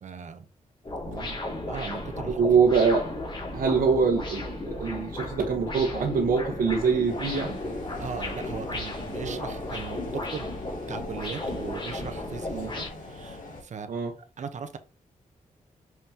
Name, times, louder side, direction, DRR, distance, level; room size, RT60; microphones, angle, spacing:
voice 1, 0.0-0.5 1.2-1.3 1.7-2.5 8.0-10.5 10.9-13.9 14.4-14.8, right 6 dB, 60° right, 1.1 m, -38 dB
sound 1, 0.8-12.9, left 2 dB, 35° left, 2.7 m, -35 dB
voice 2, 1.0-1.4 2.3-3.0 3.5-7.6 9.2-9.4 12.5-12.7 13.9-14.1, right 5 dB, 80° right, 1.4 m, -24 dB
sound 2, 7.1-13.6, left 2 dB, 70° left, 3.1 m, -41 dB
6.2 x 5.7 x 3.0 m
wide cardioid pair, 140°, 14 cm